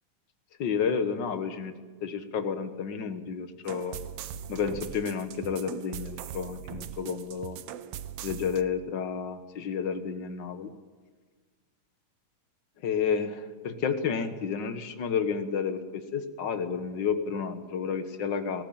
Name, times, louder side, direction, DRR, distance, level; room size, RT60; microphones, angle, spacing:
voice 1, 0.6-1.7 2.0-4.0 4.5-7.6 8.2-10.7 12.8-18.6, left 6 dB, 50° left, 9 dB, 1.5 m, -31 dB
sound 1, 3.7-8.6, right 10 dB, 70° right, 1.5 m, -40 dB
21.0 x 18.5 x 8.6 m, 1.4 s
omnidirectional pair, 3.5 m